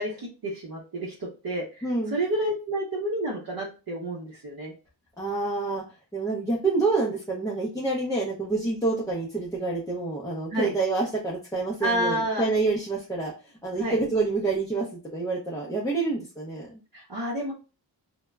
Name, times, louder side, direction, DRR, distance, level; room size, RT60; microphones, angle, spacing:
voice 1, 0.0-4.7 10.5-10.7 11.8-12.5 13.8-14.0 16.9-17.5, right 1 dB, 50° right, -5 dB, 0.7 m, -30 dB
voice 2, 1.8-2.2 5.2-5.8 6.1-13.3 13.6-16.7, right 3 dB, 10° left, -4 dB, 0.4 m, -27 dB
2.2 x 2.0 x 3.3 m, 0.32 s
wide cardioid pair, 150°, 45 cm